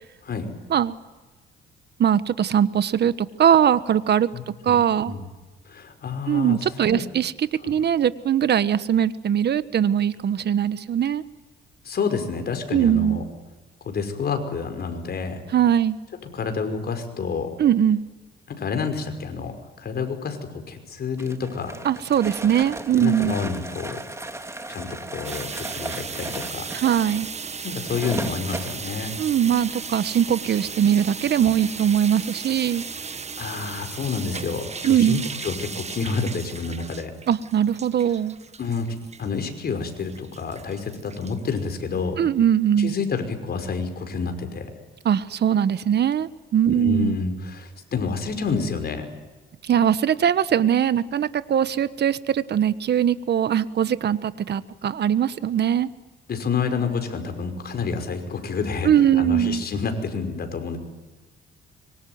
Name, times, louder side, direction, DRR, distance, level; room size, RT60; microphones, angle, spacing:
voice 1, 2.0-4.3 4.6-5.1 6.3-11.2 12.7-13.2 15.5-16.0 17.6-18.0 21.8-23.3 26.7-27.3 29.2-32.8 34.8-35.3 37.3-38.4 42.2-42.9 45.0-47.2 49.6-55.9 58.8-59.6, right 9 dB, 60° right, 14 dB, 1.4 m, -21 dB
voice 2, 4.3-4.8 5.1-5.2 5.7-6.6 6.9-7.0 7.6-7.7 11.8-13.2 13.8-15.4 16.3-17.5 18.5-21.7 23.0-24.0 24.7-26.7 27.6-29.1 33.4-37.1 38.6-38.9 39.2-42.2 42.8-44.7 46.7-49.1 56.3-60.8, left 5 dB, 55° left, 7 dB, 5.5 m, -29 dB
sound 1, 21.2-28.8, right 2 dB, 15° right, 2.8 m, -36 dB
sound 2, 25.2-42.1, right 5 dB, 35° right, 1.5 m, -36 dB
25.5 x 24.0 x 9.6 m, 1.2 s
cardioid pair, 90°, 20 cm